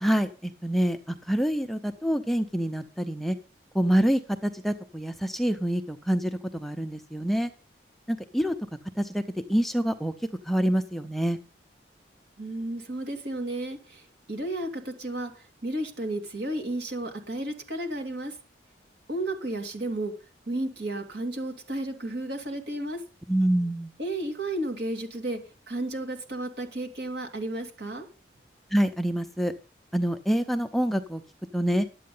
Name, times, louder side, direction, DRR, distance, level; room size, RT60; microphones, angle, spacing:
voice 1, 0.0-3.4 3.7-7.5 8.1-8.5 9.0-9.2 9.5-10.1 10.5-11.4 23.3-23.9 28.7-29.5 29.9-31.2 31.5-31.9, equal, ahead, 7 dB, 0.6 m, -26 dB
voice 2, 12.4-14.0 14.3-15.3 15.6-18.3 19.1-20.1 20.5-23.0 24.0-25.4 25.7-28.1, right 1 dB, 65° right, 5 dB, 2.6 m, -32 dB
11.5 x 8.6 x 5.5 m, 0.35 s
head